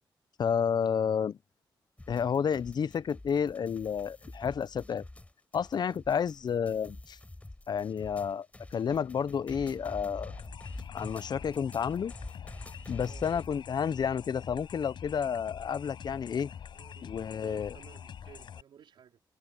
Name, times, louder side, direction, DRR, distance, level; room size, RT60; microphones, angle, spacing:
voice 1, 0.4-1.4 2.1-5.0 5.5-7.2 7.7-8.5 8.7-10.3 10.9-12.1 12.9-16.5 17.1-17.7, left 7 dB, 60° left, 0.6 m, -30 dB
sound 1, 2.0-13.5, left 2 dB, 15° left, 5.4 m, -47 dB
sound 2, 10.3-18.6, left 8 dB, 80° left, 6.7 m, -46 dB
voice 2, 13.0-13.5 16.7-19.2, right 8 dB, 90° right, 4.7 m, -56 dB
cardioid pair, 80°, 8 cm